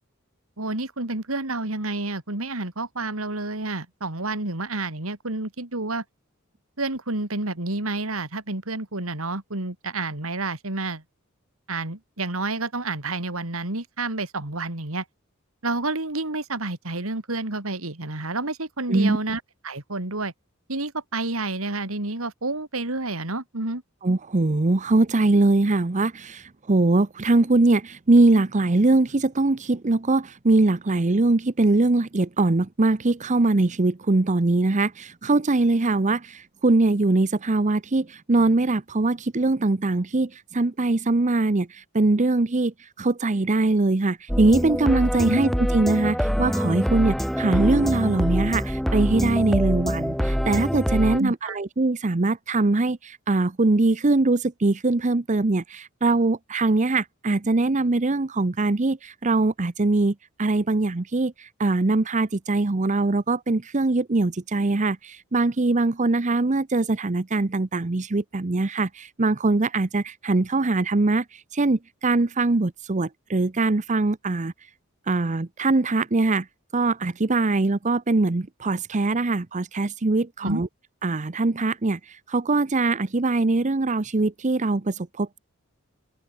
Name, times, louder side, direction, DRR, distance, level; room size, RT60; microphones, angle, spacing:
voice 1, 0.6-6.0 6.8-11.0 11.7-15.0 15.6-20.3 20.7-23.8 45.2-45.4 51.2-51.6 80.4-80.6, right 2 dB, 80° right, 3.2 m, -29 dB
voice 2, 24.0-74.5 75.1-76.5 76.7-80.7 81.0-85.4, right 2 dB, 35° right, 0.8 m, -22 dB
sound 1, 44.3-51.2, equal, ahead, 3.3 m, -24 dB
open air
head